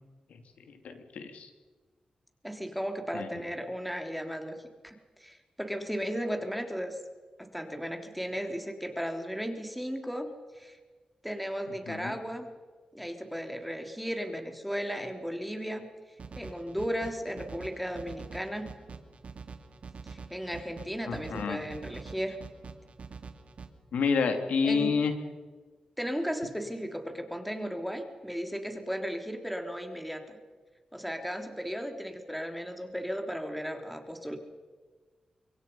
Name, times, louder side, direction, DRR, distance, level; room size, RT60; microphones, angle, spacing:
voice 1, 0.8-1.5 3.1-3.3 11.9-12.1 21.1-21.6 23.9-25.1, left 5 dB, 85° left, 6 dB, 2.8 m, -28 dB
voice 2, 2.4-4.6 4.8-7.0 7.4-10.3 10.6-10.8 11.2-12.5 12.9-15.9 16.4-18.7 20.0-22.4 24.6-25.0 26.0-30.4 30.9-34.4, equal, ahead, 5 dB, 3.6 m, -35 dB
sound 1, 16.2-23.7, right 5 dB, 65° right, 2.5 m, -45 dB
26.0 x 23.0 x 5.6 m, 1.4 s
cardioid pair, 50°, 2 cm